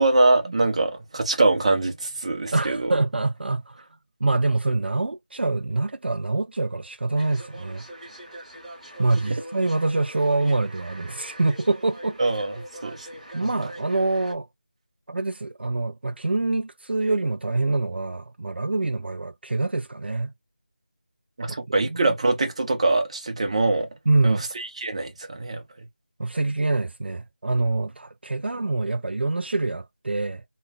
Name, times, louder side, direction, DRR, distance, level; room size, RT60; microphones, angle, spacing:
voice 1, 0.0-2.9 12.2-12.5 12.8-13.1 21.4-23.9 24.2-25.6, right 2 dB, 35° right, 0.8 m, -23 dB
voice 2, 2.5-3.9 4.2-7.8 9.0-12.2 13.3-14.5 15.1-20.3 21.5-22.2 24.1-24.5 26.2-30.4, right 2 dB, 75° right, 0.4 m, -25 dB
sound 1, 7.1-14.3, equal, ahead, 1.1 m, -42 dB
3.1 x 2.3 x 2.2 m
figure-of-eight pair, 170°, 6 cm